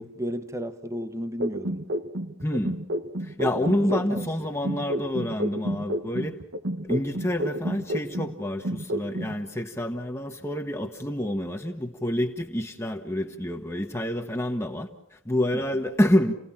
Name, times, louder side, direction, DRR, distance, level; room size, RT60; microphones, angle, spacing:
voice 1, 0.0-1.9 3.6-4.6 15.5-15.6, equal, 15° right, 1.1 m, -34 dB
sound 1, 1.4-4.3 4.6-8.3 8.6-9.3, right 1 dB, 65° right, 1.1 m, -30 dB
voice 2, 2.4-2.8 3.2-6.4 6.8-16.3, left 1 dB, 10° left, 1.2 m, -28 dB
29.5 x 17.5 x 7.4 m
head